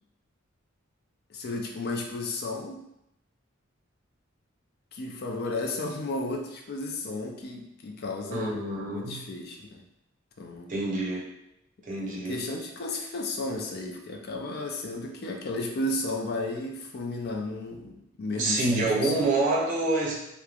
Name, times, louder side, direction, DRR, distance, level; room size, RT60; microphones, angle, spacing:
voice 1, 1.3-2.8 4.9-9.8 10.4-10.7 12.1-19.2, left 2 dB, 50° left, 2 dB, 0.4 m, -33 dB
voice 2, 8.3-9.2 10.7-11.3 11.9-12.4 18.3-20.1, right 2 dB, 40° right, -4 dB, 0.6 m, -27 dB
3.1 x 2.1 x 2.3 m, 0.82 s
head